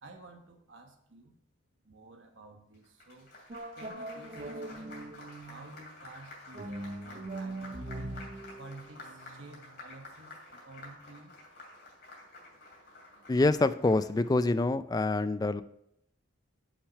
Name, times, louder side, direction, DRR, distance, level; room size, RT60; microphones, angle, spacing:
voice 1, 0.0-1.3 1.8-3.3 3.8-4.9 5.4-8.2 8.6-11.3, right 2 dB, 80° right, 4 dB, 1.2 m, -52 dB
Applause, 2.7-14.4, left 2 dB, 50° left, 2.7 m, -51 dB
sound 1, 3.5-5.8 6.5-9.9, right 2 dB, 40° right, 0.6 m, -42 dB
voice 2, 13.3-15.6, left 2 dB, 20° left, 13 dB, 0.3 m, -26 dB
6.6 x 6.2 x 5.6 m, 0.76 s
head